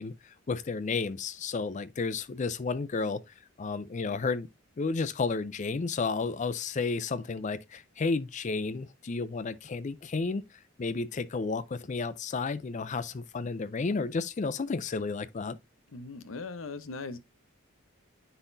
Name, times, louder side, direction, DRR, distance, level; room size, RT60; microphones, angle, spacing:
voice 1, 0.0-3.2 3.6-4.5 4.8-10.4 10.8-15.6, left 4 dB, 35° left, 0.4 m, -32 dB
voice 2, 15.9-17.2, left 3 dB, 75° left, 0.8 m, -39 dB
9.7 x 4.1 x 2.6 m
head